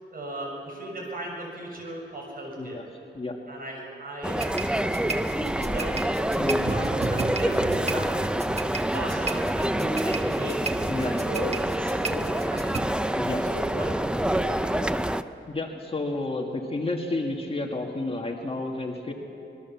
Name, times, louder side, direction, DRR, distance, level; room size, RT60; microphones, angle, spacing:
voice 1, 0.1-2.8 3.5-6.0 6.6-8.4 8.9-10.6 11.0-13.1 13.5-13.9 14.3-15.1, right 1 dB, 50° right, -1 dB, 6.8 m, -36 dB
sound 1, 4.2-15.2, right 1 dB, 5° right, 0.5 m, -27 dB
sound 2, 4.4-12.8, right 3 dB, 35° right, 1.4 m, -34 dB
voice 2, 6.3-6.8 10.9-11.1 13.2-13.4 15.5-19.1, left 2 dB, 30° left, 1 dB, 2.0 m, -31 dB
26.0 x 21.0 x 7.3 m, 2.8 s
wide cardioid pair, 125°, 19 cm